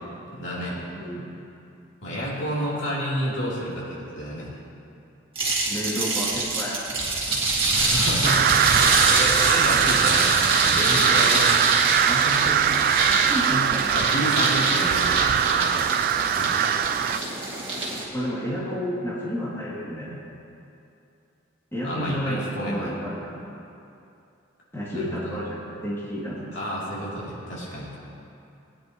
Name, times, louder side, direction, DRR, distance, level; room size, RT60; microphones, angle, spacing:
voice 1, 0.3-0.8 2.0-4.5 7.7-11.6 13.9-16.8 21.8-22.9 24.9-25.4 26.5-28.0, equal, 70° left, -7 dB, 3.1 m, -30 dB
sound 1, 5.4-18.0, right 2 dB, 30° right, 2.3 m, -25 dB
voice 2, 5.7-6.9 12.1-12.8 13.1-13.9 18.1-20.2 21.7-23.4 24.7-26.6, equal, 15° left, -8 dB, 2.6 m, -31 dB
sound 2, 8.2-17.2, right 9 dB, 50° right, 0.3 m, -22 dB
20.0 x 10.0 x 3.1 m, 2.7 s
head